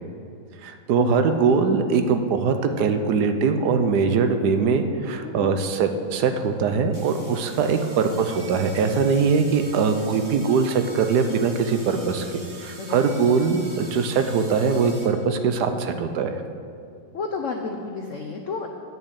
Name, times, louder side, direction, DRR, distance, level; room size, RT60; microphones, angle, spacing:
voice 1, 0.6-12.2 12.6-16.4, right 5 dB, 65° right, 7 dB, 1.1 m, -22 dB
voice 2, 5.2-5.6 12.8-13.1 17.1-18.7, left 4 dB, 75° left, 2 dB, 0.7 m, -31 dB
sound 1, 6.1-6.2 6.9-15.1, right 2 dB, 40° right, 2.0 m, -43 dB
9.1 x 6.8 x 8.0 m, 2.3 s
omnidirectional pair, 2.2 m